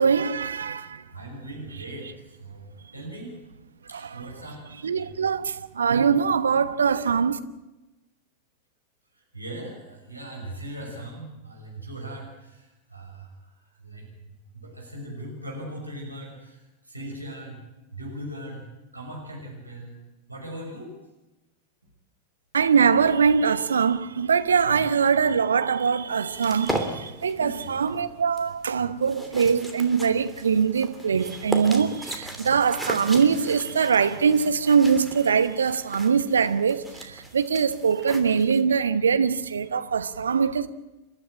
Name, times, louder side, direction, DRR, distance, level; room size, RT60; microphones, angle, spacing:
voice 1, 0.0-1.0 3.9-4.2 4.8-7.4 22.5-40.7, right 6 dB, 70° right, 1.0 m, -22 dB
voice 2, 1.1-2.1 2.4-3.3 3.9-4.6 4.9-5.1 9.3-13.3 13.8-16.6 16.9-17.6 17.9-18.6 18.9-20.0 20.3-20.9 24.6-24.8 27.4-27.9, right 1 dB, 85° right, 6.1 m, -39 dB
sound 1, 26.4-38.6, right 1 dB, 5° right, 3.0 m, -37 dB
29.5 x 12.0 x 8.9 m
figure-of-eight pair, 90°, 0 cm